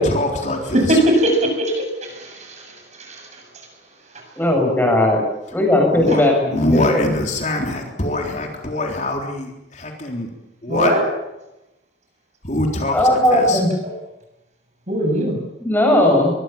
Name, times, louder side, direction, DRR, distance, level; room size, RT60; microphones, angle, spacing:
voice 1, 0.0-1.0 5.9-6.2 6.5-10.3 10.6-10.9 12.4-13.6, left 1 dB, 40° left, 2 dB, 3.8 m, -23 dB
voice 2, 0.7-2.3 3.1-3.2 6.1-6.2 10.7-11.1 14.9-15.4, right 1 dB, 40° right, 2 dB, 7.7 m, -19 dB
voice 3, 4.4-5.2 5.5-7.1 12.9-13.7 15.6-16.3, left 1 dB, 10° left, 1 dB, 7.7 m, -17 dB
23.5 x 23.0 x 7.3 m, 0.92 s
head